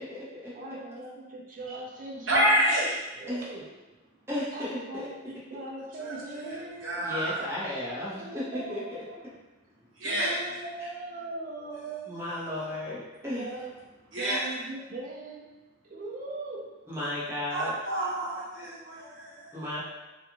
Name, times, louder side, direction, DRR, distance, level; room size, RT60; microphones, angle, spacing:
voice 1, 0.0-0.6 3.3-3.4 4.3-5.1 7.0-8.8 12.1-13.5 16.9-17.7 19.5-19.8, left 1 dB, 15° right, -9 dB, 0.9 m, -34 dB
voice 2, 0.5-2.5 3.2-3.7 4.5-7.1 8.1-9.2 10.0-12.3 13.2-13.7 14.2-16.8, right 2 dB, 45° right, -1 dB, 0.4 m, -40 dB
voice 3, 2.3-3.0 6.0-6.1 6.5-7.7 9.9-10.4 12.2-12.9 14.1-14.5 17.5-19.7, right 1 dB, 85° right, -7 dB, 1.0 m, -29 dB
2.4 x 2.4 x 2.9 m, 1.1 s
head